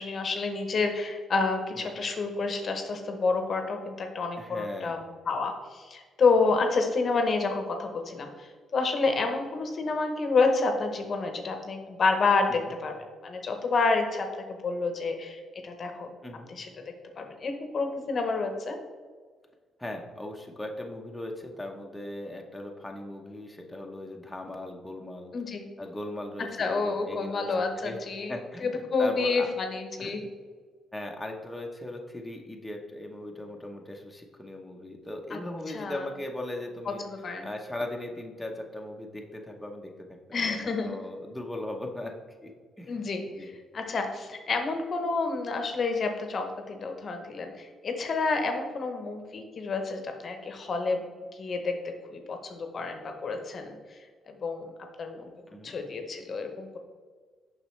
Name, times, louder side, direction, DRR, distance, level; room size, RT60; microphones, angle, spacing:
voice 1, 0.0-8.5 8.7-12.9 13.2-16.1 16.5-16.7 17.2-18.8 25.3-25.7 26.6-28.3 28.6-30.2 35.3-35.4 35.7-36.0 37.0-37.5 40.3-41.0 42.9-51.0 51.3-51.7 52.1-53.8 54.3-54.7 55.0-55.3 55.6-56.8, left 4 dB, 50° left, 5 dB, 0.8 m, -29 dB
voice 2, 4.4-5.0 12.5-12.7 16.2-16.5 19.8-25.3 25.8-27.5 27.7-28.0 28.3-29.5 30.0-30.1 30.9-37.0 37.4-42.1 42.4-42.5 42.8-43.0 43.4-43.5 55.5-55.7, left 1 dB, 5° left, 1 dB, 0.8 m, -38 dB
6.8 x 5.5 x 3.2 m, 1.5 s
cardioid pair, 90°, 0 cm